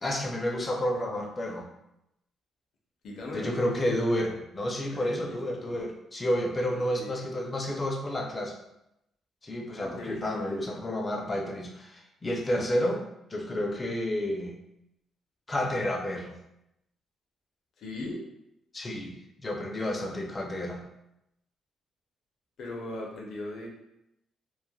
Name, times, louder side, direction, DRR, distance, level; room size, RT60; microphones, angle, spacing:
voice 1, 0.0-1.7 3.3-8.6 9.4-13.0 13.3-14.5 15.5-16.4 18.7-20.8, left 1 dB, 25° left, 1 dB, 0.5 m, -30 dB
voice 2, 3.0-3.9 4.9-5.8 6.7-7.2 9.8-10.7 17.8-18.2 22.6-23.7, left 2 dB, 65° left, 0 dB, 0.7 m, -39 dB
3.1 x 2.0 x 2.3 m, 0.84 s
cardioid pair, 90°, 0 cm